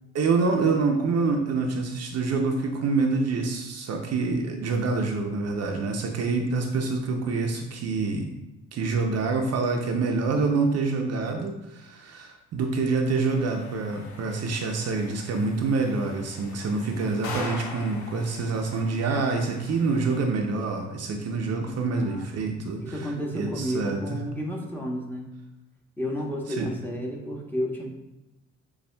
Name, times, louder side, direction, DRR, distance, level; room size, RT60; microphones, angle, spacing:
voice 1, 0.1-8.3 8.7-24.2 26.5-26.7, right 4 dB, 55° right, 3 dB, 0.6 m, -26 dB
sound 1, 13.1-20.2, left 3 dB, 70° left, 0.8 m, -42 dB
voice 2, 21.9-22.5 22.8-25.3 26.0-27.9, equal, 5° left, -1 dB, 0.9 m, -32 dB
6.8 x 2.3 x 2.2 m, 0.98 s
cardioid pair, 90°, 30 cm